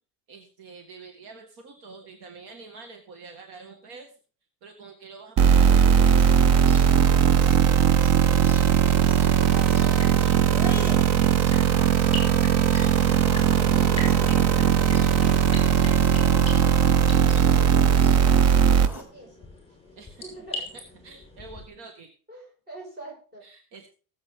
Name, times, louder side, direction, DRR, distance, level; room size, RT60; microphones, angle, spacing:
voice 1, 0.3-4.1 4.6-5.8 20.0-20.2 21.0-22.1 23.4-23.9, right 4 dB, 60° right, 3 dB, 1.9 m, -46 dB
sound 1, 5.4-19.0, left 1 dB, 5° right, 2.5 m, -38 dB
sound 2, 5.4-18.9, right 8 dB, 35° right, 0.5 m, -19 dB
voice 2, 8.3-10.6 11.3-14.3 18.3-19.5 20.2-20.6 22.3-23.4, right 1 dB, 20° right, -1 dB, 5.6 m, -45 dB
sound 3, 9.9-21.7, left 1 dB, 15° left, 5.2 m, -42 dB
19.0 x 7.9 x 3.7 m, 0.38 s
cardioid pair, 170°, 44 cm